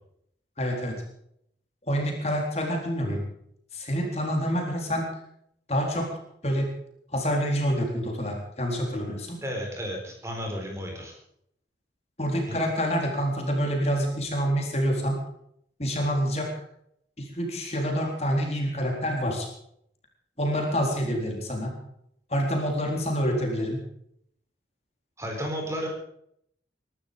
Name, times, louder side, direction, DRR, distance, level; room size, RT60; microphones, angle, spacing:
voice 1, 0.6-1.0 1.9-3.2 3.7-5.1 5.7-6.1 6.4-6.7 7.1-9.4 12.2-15.2 15.8-16.5 17.2-19.5 20.4-21.9 22.3-23.8, equal, 35° left, 1 dB, 4.0 m, -27 dB
voice 2, 9.4-11.1 12.5-12.6 25.2-25.9, equal, 15° right, 1 dB, 4.2 m, -33 dB
22.0 x 12.5 x 5.3 m, 0.70 s
head